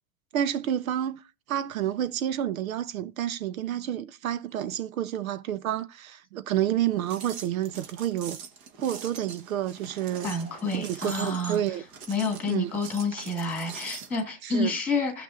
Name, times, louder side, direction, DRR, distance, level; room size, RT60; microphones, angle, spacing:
voice 1, 0.3-1.2 1.5-8.4 8.8-10.3 10.7-11.8 12.5-12.7 14.4-14.8, right 11 dB, 60° right, 0.8 m, -29 dB
sound 1, 6.9-14.2, right 6 dB, 30° right, 1.3 m, -43 dB
voice 2, 10.2-11.6 12.1-15.2, left 3 dB, 5° left, 1.9 m, -29 dB
16.5 x 5.9 x 2.5 m
hypercardioid pair, 145°, 48 cm